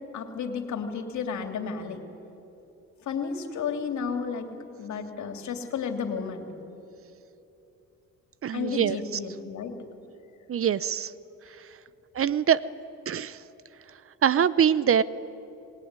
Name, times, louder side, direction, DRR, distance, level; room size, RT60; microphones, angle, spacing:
voice 1, 0.0-2.0 3.0-4.5 4.8-6.5 8.5-9.7, left 6 dB, 70° left, 5 dB, 3.1 m, -32 dB
voice 2, 8.4-9.0 10.5-11.1 12.1-12.6 13.1-13.4 14.2-15.0, right 8 dB, 45° right, 17 dB, 0.8 m, -23 dB
26.5 x 20.5 x 9.7 m, 2.9 s
cardioid pair, 90°, 30 cm